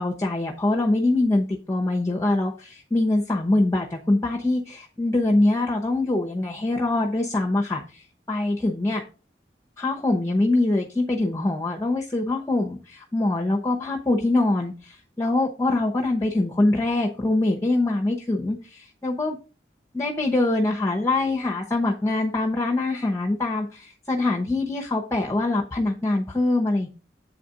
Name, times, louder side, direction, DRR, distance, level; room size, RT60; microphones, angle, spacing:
voice 1, 0.0-9.0 9.8-19.4 19.9-26.9, left 2 dB, 15° left, 1 dB, 0.9 m, -24 dB
8.2 x 4.2 x 5.1 m, 0.36 s
head